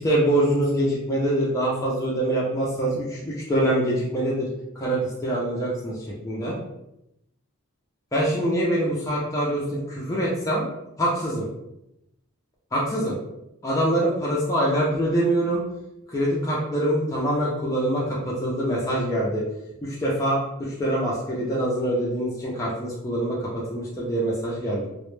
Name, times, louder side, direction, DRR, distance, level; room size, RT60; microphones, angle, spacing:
voice 1, 0.0-4.5 4.8-6.0 6.2-6.6 8.1-10.6 11.0-11.5 12.7-13.2 13.6-15.6 16.1-19.4 19.8-24.9, right 1 dB, 15° left, -6 dB, 0.3 m, -24 dB
2.1 x 2.0 x 3.0 m, 0.85 s
head